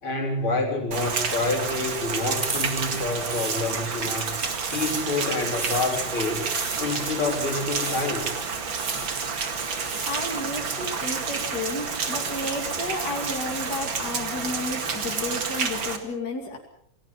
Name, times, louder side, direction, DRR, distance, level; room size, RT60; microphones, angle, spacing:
voice 1, 0.0-4.4 4.7-6.5 6.8-8.3, left 2 dB, 70° left, 2 dB, 4.7 m, -27 dB
Rain, 0.9-16.0, right 5 dB, 65° right, 2.8 m, -30 dB
sound 1, 1.9-4.2 4.5-5.2 5.5-6.1 6.5-7.0 7.7-8.3 8.7-9.3 9.7-10.4, right 3 dB, 25° right, 1.0 m, -35 dB
voice 2, 10.0-16.6, left 2 dB, 45° left, 1 dB, 3.2 m, -32 dB
28.0 x 18.5 x 5.7 m, 0.68 s
omnidirectional pair, 2.3 m